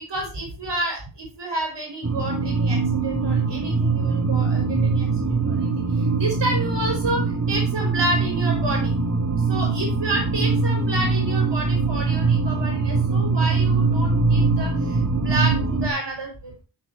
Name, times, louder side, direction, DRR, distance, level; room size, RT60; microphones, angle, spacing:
voice 1, 0.1-8.9 9.5-16.6, right 1 dB, 85° right, 0 dB, 5.0 m, -30 dB
sound 1, 2.0-15.9, right 4 dB, 40° right, 1.9 m, -22 dB
10.5 x 4.6 x 4.5 m, 0.32 s
cardioid pair, 45°, 41 cm